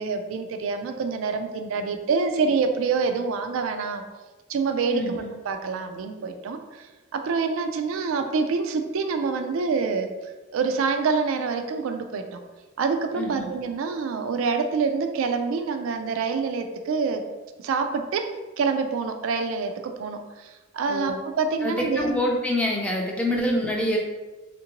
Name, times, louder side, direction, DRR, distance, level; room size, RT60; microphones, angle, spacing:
voice 1, 0.0-4.0 4.5-6.9 7.1-10.1 10.5-12.4 12.8-17.2 17.6-18.3 18.6-22.1 23.3-23.6, right 4 dB, 85° right, 6 dB, 0.3 m, -26 dB
voice 2, 4.9-5.3 13.2-13.5 20.9-21.2 21.6-24.0, left 1 dB, 5° left, -1 dB, 0.4 m, -26 dB
3.5 x 2.6 x 2.8 m, 1.2 s
head